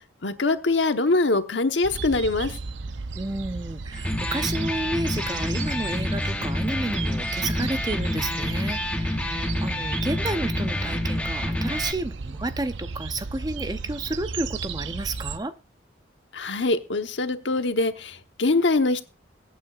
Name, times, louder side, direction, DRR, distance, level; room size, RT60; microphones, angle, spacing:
voice 1, 0.2-2.5 16.3-19.1, left 3 dB, 85° left, 1.1 m, -23 dB
sound 1, 1.8-15.4, right 4 dB, 85° right, 0.6 m, -35 dB
voice 2, 3.1-15.5, right 2 dB, 20° right, 0.6 m, -31 dB
Electric guitar, 3.9-11.9, left 1 dB, 5° left, 0.9 m, -28 dB
22.5 x 8.9 x 2.4 m
head